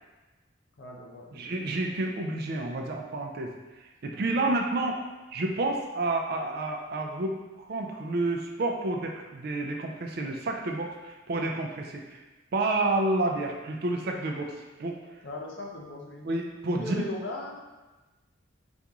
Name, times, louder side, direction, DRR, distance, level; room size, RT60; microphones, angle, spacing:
voice 1, 0.8-1.5 4.3-4.5 15.2-16.3 16.7-17.6, left 2 dB, 60° left, -1 dB, 0.6 m, -38 dB
voice 2, 1.3-3.5 4.0-5.0 5.3-12.2 12.5-14.5 14.8-15.0 16.2-17.1, right 2 dB, 50° right, 2 dB, 0.4 m, -29 dB
2.9 x 2.5 x 3.5 m, 1.2 s
head